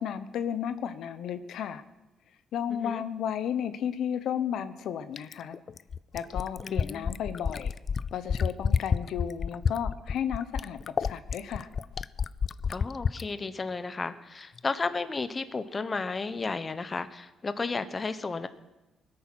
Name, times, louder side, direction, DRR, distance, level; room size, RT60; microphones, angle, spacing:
voice 1, 0.0-1.8 2.5-5.6 6.1-7.7 8.1-11.7, left 9 dB, 75° left, 12 dB, 0.8 m, -33 dB
voice 2, 2.7-3.0 6.6-7.1 12.7-18.5, left 4 dB, 30° left, 12 dB, 0.9 m, -33 dB
Fill (with liquid), 5.2-13.3 14.6-14.7, left 6 dB, 45° left, 0.4 m, -29 dB
20.0 x 8.8 x 6.1 m, 1.1 s
cardioid pair, 90°, 0 cm